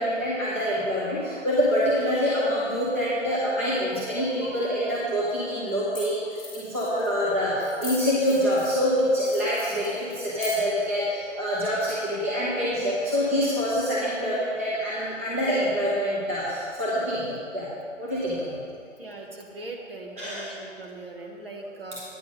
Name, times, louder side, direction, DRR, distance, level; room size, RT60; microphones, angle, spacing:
voice 1, 0.0-17.7 18.0-18.6 20.2-20.5, equal, 10° right, -10 dB, 0.7 m, -26 dB
sound 1, 4.9-5.0 5.7-5.8 5.9-6.0 6.3-7.1 7.6-8.8 9.2-10.8, left 2 dB, 5° left, 2.7 m, -40 dB
voice 2, 19.0-22.0, right 2 dB, 50° right, 0 dB, 1.4 m, -40 dB
9.3 x 6.8 x 5.4 m, 2.3 s
figure-of-eight pair, 150°, 38 cm